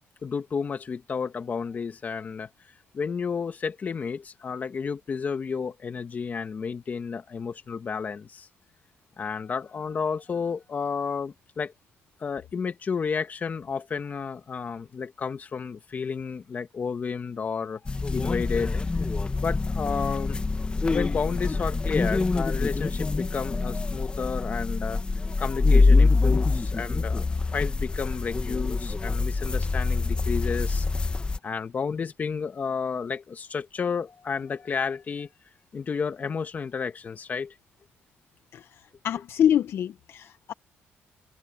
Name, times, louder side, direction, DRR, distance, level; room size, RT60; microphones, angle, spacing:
voice 1, 0.2-2.5 2.9-8.5 9.2-11.7 12.2-17.8 18.1-18.8 19.4-20.4 20.9-25.0 25.4-30.9 31.4-35.3 35.7-37.5, left 5 dB, 40° left, 1.9 m, -31 dB
sound 1, 17.9-31.4, left 3 dB, 25° left, 1.4 m, -25 dB
voice 2, 39.0-40.5, left 9 dB, 65° left, 0.7 m, -25 dB
cardioid pair, 110°, 4 cm